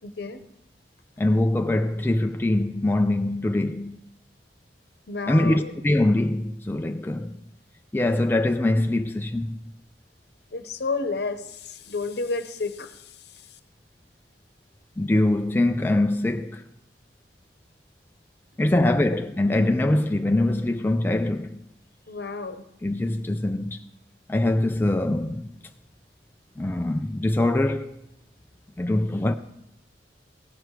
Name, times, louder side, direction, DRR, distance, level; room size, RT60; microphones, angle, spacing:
voice 1, 0.0-0.4 5.1-5.7 10.5-13.6 18.8-18.9 22.1-22.6, left 3 dB, 65° left, 0.9 m, -31 dB
voice 2, 1.2-4.0 5.3-7.4 7.9-9.6 15.0-16.6 18.6-21.6 22.8-23.8 24.3-25.5 26.6-27.9 28.8-29.3, left 1 dB, 10° left, 0.3 m, -23 dB
16.5 x 6.6 x 4.6 m
head